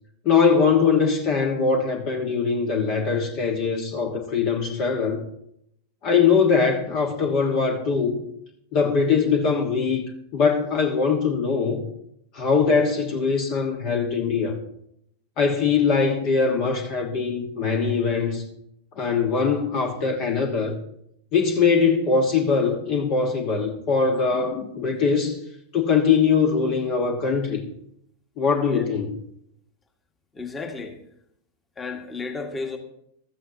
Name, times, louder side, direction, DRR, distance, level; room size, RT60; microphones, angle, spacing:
voice 1, 0.2-5.3 6.0-8.2 8.7-10.0 10.3-11.9 12.3-14.6 15.4-18.5 19.0-20.8 21.3-25.4 25.7-27.6 28.4-29.1, left 5 dB, 40° left, 1.4 m, -22 dB
voice 2, 30.3-31.0 31.8-32.8, left 4 dB, 15° left, 1.7 m, -33 dB
15.0 x 13.0 x 2.8 m
figure-of-eight pair, 90°, 0 cm